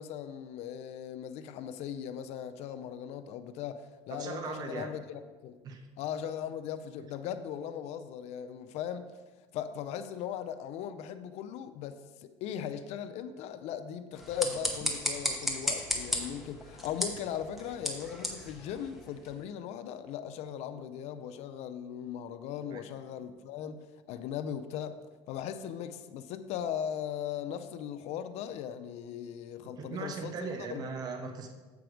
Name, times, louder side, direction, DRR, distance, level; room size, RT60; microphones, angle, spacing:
voice 1, 0.0-5.6 6.0-9.1 9.5-25.0 25.3-30.9, left 9 dB, 60° left, 0.5 m, -38 dB
voice 2, 4.1-4.9 5.6-5.8 22.7-22.8 29.8-31.5, right 4 dB, 30° right, 0.6 m, -38 dB
sound 1, 14.1-19.4, left 1 dB, ahead, 0.8 m, -35 dB
7.7 x 4.7 x 5.0 m
cardioid pair, 155°, 13 cm